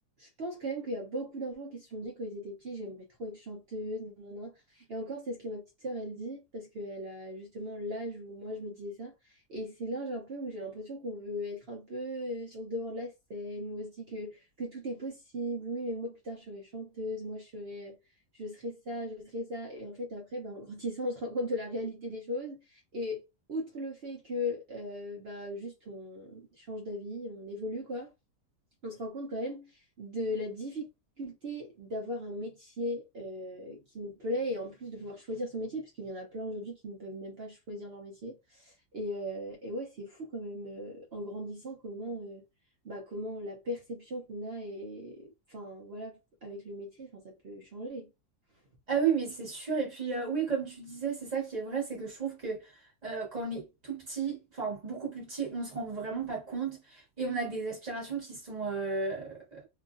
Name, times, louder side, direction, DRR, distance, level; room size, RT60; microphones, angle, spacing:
voice 1, 0.2-18.0 18.3-23.2 23.5-28.1 28.8-30.9 31.2-42.4 42.8-48.1, equal, 55° right, 0.7 m, -38 dB
voice 2, 48.9-52.7 53.0-59.6, right 5 dB, 25° right, 1.4 m, -33 dB
3.0 x 2.5 x 2.4 m
omnidirectional pair, 1.8 m